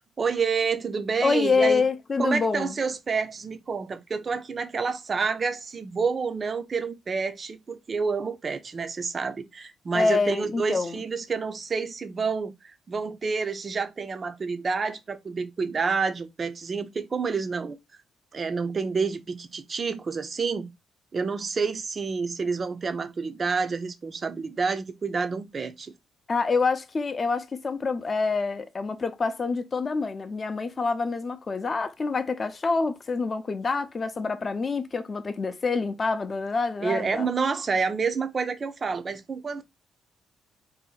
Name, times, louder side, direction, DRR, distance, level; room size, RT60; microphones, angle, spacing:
voice 1, 0.2-1.8 2.2-17.8 18.3-20.7 21.1-25.9 36.8-39.6, right 5 dB, 40° right, 0.5 m, -29 dB
voice 2, 1.2-2.7 9.9-11.0 26.3-37.3, left 4 dB, 35° left, 0.5 m, -26 dB
2.7 x 2.1 x 3.8 m
cardioid pair, 90°, 0 cm